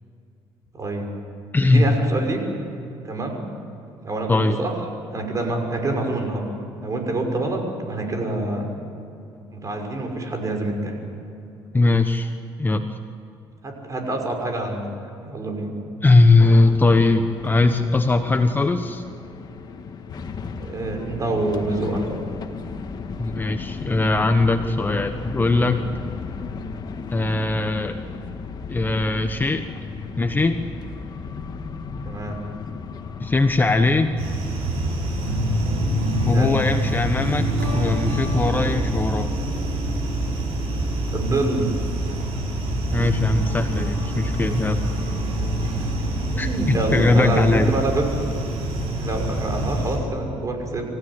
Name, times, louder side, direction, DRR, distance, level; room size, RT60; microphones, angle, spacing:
voice 1, 0.7-1.1 1.6-2.4 3.0-3.4 4.0-4.7 5.1-6.5 6.7-8.7 9.5-11.0 13.6-14.9 15.2-15.7 20.6-22.1 32.1-32.4 36.3-36.6 41.1-41.7 45.8-45.9 46.3-48.0 49.0-50.8, right 2 dB, 35° right, 3 dB, 6.2 m, -26 dB
voice 2, 1.5-2.0 4.3-4.6 11.7-13.0 16.0-19.0 23.2-25.8 27.1-28.0 28.7-29.6 30.2-30.6 33.2-34.1 36.3-39.3 42.9-44.8 46.4-47.7, left 3 dB, 20° left, 7 dB, 1.2 m, -20 dB
sound 1, 16.6-35.4, left 4 dB, 45° left, 1.8 m, -35 dB
sound 2, 34.2-50.0, right 1 dB, 85° right, 7.5 m, -25 dB
26.5 x 16.0 x 9.9 m, 2.7 s
cardioid pair, 95°, 10 cm